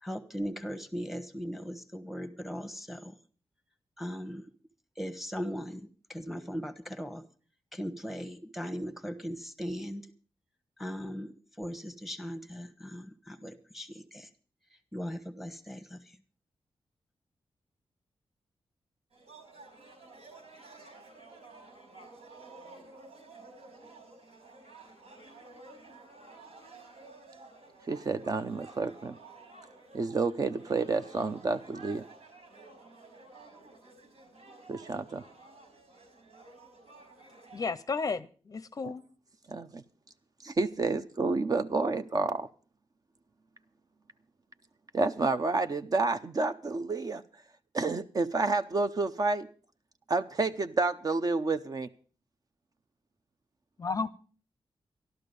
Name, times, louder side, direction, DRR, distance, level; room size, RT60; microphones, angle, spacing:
voice 1, 0.0-3.2 4.0-4.5 5.0-7.2 7.7-10.0 10.8-14.3 14.7-16.2, equal, ahead, 1.2 m, -39 dB
sound 1, 19.1-37.7, right 3 dB, 85° right, 4.8 m, -52 dB
voice 2, 27.9-29.2 29.9-32.0 34.7-35.2 38.8-38.9 39.5-39.8 40.4-42.5 44.9-47.2 47.7-49.5 50.1-51.9, right 3 dB, 35° right, 0.6 m, -29 dB
voice 3, 37.5-39.0 53.8-54.1, left 4 dB, 35° left, 0.6 m, -33 dB
13.5 x 12.5 x 5.3 m
wide cardioid pair, 175°, 10 cm